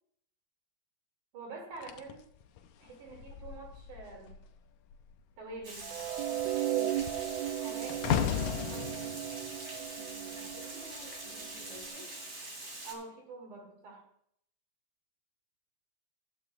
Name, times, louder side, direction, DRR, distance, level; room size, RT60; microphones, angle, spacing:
voice 1, 1.3-2.3 2.8-4.4 5.4-7.0 7.5-9.1 12.8-14.1, right 3 dB, 70° right, 1 dB, 4.2 m, -47 dB
sound 1, 1.8-4.5 4.8-5.2 5.5-10.8 11.6-11.8, left 9 dB, 75° left, 2.1 m, -37 dB
Water, 5.6-12.9, right 2 dB, 30° right, 2.5 m, -44 dB
sound 2, 5.8-12.0, right 12 dB, 85° right, 1.5 m, -36 dB
voice 2, 9.9-12.1, left 2 dB, 10° left, -1 dB, 3.8 m, -53 dB
15.0 x 12.0 x 2.5 m, 0.68 s
omnidirectional pair, 3.7 m